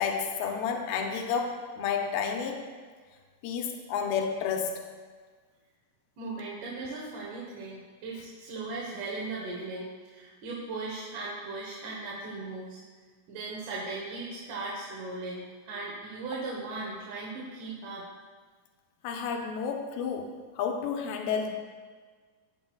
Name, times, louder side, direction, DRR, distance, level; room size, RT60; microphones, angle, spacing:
voice 1, 0.0-2.7 3.4-4.8 19.0-20.3 20.6-21.5, left 6 dB, 80° left, 3 dB, 2.6 m, -30 dB
voice 2, 6.2-12.8 13.3-18.0, right 3 dB, 65° right, -4 dB, 2.5 m, -38 dB
16.0 x 7.9 x 2.3 m, 1.5 s
omnidirectional pair, 4.2 m